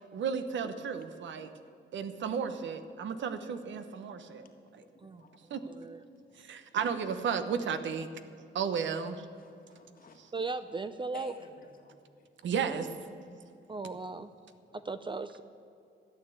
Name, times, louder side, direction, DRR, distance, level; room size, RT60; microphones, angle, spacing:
voice 1, 0.1-1.5 1.9-4.4 5.5-5.6 6.4-8.1 8.5-9.2 12.4-12.9, right 6 dB, 80° right, 9 dB, 1.0 m, -33 dB
voice 2, 1.2-1.8 2.9-3.2 4.4-4.5 4.8-5.5 6.3-6.5 9.3-10.2 11.1-12.3 14.7-14.8, left 5 dB, 50° left, 4 dB, 1.7 m, -56 dB
voice 3, 5.6-6.0 10.3-11.3 13.7-14.3 14.7-15.4, right 3 dB, 25° right, 11 dB, 0.4 m, -37 dB
13.0 x 9.2 x 8.1 m, 2.5 s
cardioid pair, 110°, 19 cm